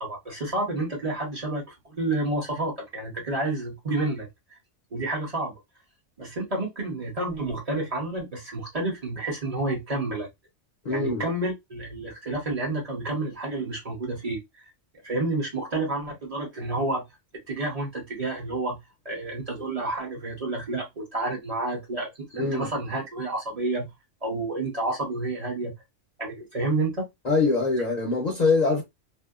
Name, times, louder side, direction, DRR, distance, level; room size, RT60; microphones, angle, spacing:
voice 1, 0.0-4.3 4.9-5.5 6.2-10.3 10.9-14.4 15.0-17.0 17.5-18.8 19.0-23.9 24.2-25.7 26.2-27.0, right 2 dB, 35° right, 0.8 m, -29 dB
voice 2, 10.8-11.2 22.4-22.7 27.2-28.8, left 3 dB, 45° left, 0.6 m, -23 dB
2.7 x 2.0 x 2.3 m
omnidirectional pair, 1.3 m